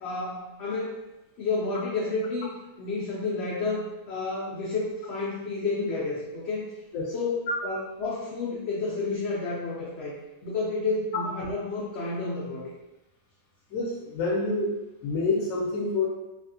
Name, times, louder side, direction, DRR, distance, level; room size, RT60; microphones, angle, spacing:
voice 1, 0.0-1.0 1.4-2.5 2.8-6.7 7.1-7.3 7.6-10.1 10.4-12.7, left 3 dB, 65° left, -6 dB, 0.8 m, -30 dB
voice 2, 13.7-14.7 15.0-16.1, left 3 dB, 85° left, -3 dB, 1.0 m, -27 dB
3.3 x 2.4 x 2.6 m, 0.98 s
omnidirectional pair, 1.3 m